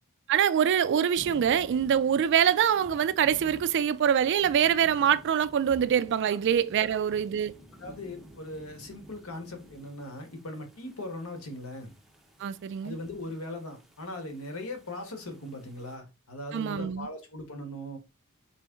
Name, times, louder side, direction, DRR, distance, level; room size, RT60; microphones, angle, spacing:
voice 1, 0.3-7.5 12.4-12.9 16.5-17.1, right 8 dB, 55° right, 0.3 m, -24 dB
sound 1, 0.6-16.0, equal, ahead, 0.6 m, -52 dB
voice 2, 7.8-11.9 12.8-18.0, left 1 dB, 70° left, 1.1 m, -39 dB
4.1 x 3.0 x 3.4 m
head